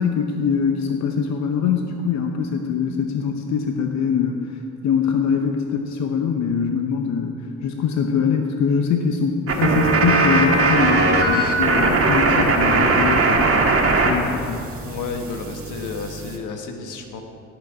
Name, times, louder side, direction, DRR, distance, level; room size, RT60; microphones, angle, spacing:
voice 1, 0.0-4.4 4.8-7.3 7.6-13.5 14.0-14.6, left 6 dB, 65° left, 4 dB, 0.8 m, -23 dB
sound 1, 9.5-14.1 14.4-16.3, right 3 dB, 50° right, 1.6 m, -19 dB
voice 2, 14.8-17.2, left 4 dB, 85° left, 4 dB, 1.3 m, -31 dB
17.0 x 6.7 x 4.9 m, 2.6 s
cardioid pair, 90°, 30 cm